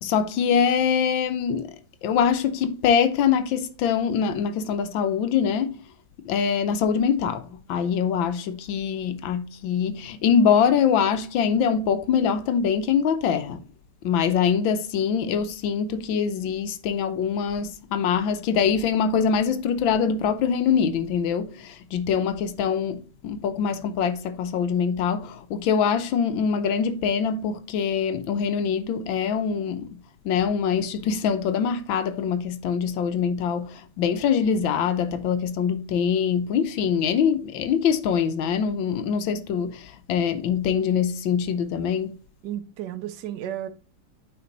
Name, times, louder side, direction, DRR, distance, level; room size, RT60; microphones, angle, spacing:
voice 1, 0.0-1.8 2.0-5.8 6.2-13.7 14.0-42.2, left 7 dB, 75° left, 1.5 m, -24 dB
voice 2, 42.4-43.7, right 11 dB, 65° right, 1.2 m, -33 dB
8.7 x 4.5 x 3.8 m
omnidirectional pair, 2.2 m